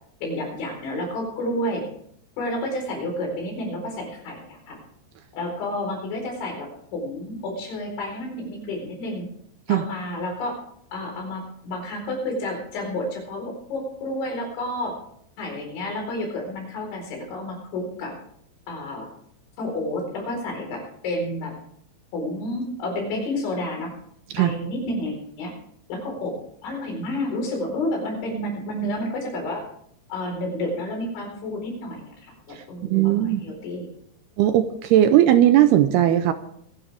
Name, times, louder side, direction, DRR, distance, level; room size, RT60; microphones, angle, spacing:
voice 1, 0.2-1.8 2.4-4.8 5.3-9.3 9.7-10.6 10.9-15.0 15.4-18.1 18.7-19.1 19.6-21.5 22.1-24.0 24.4-25.5 25.9-26.3 26.6-29.6 30.1-33.9, left 1 dB, 90° left, 1 dB, 6.9 m, -30 dB
voice 2, 32.9-33.5 34.4-36.3, right 12 dB, 80° right, 9 dB, 2.4 m, -18 dB
24.0 x 11.0 x 3.5 m, 0.68 s
omnidirectional pair, 5.2 m